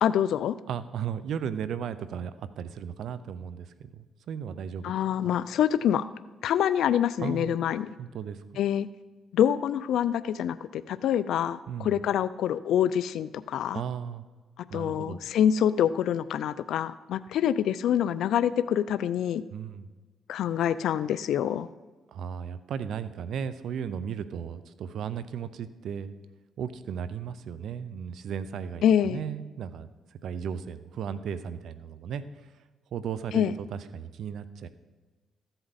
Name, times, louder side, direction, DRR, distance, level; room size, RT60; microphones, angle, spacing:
voice 1, 0.0-0.6 4.8-6.1 6.4-7.9 8.6-8.9 9.3-13.8 14.7-19.4 20.3-21.7 28.8-29.2 33.3-33.5, left 9 dB, 75° left, 15 dB, 0.4 m, -26 dB
voice 2, 0.7-4.9 5.2-5.4 7.2-7.5 8.0-8.4 11.7-12.0 13.7-14.2 14.7-15.2 19.5-19.9 22.1-26.1 26.6-32.5 32.9-34.7, right 7 dB, 70° right, 14 dB, 0.5 m, -35 dB
14.5 x 7.9 x 4.1 m, 1.3 s
cardioid pair, 90°, 0 cm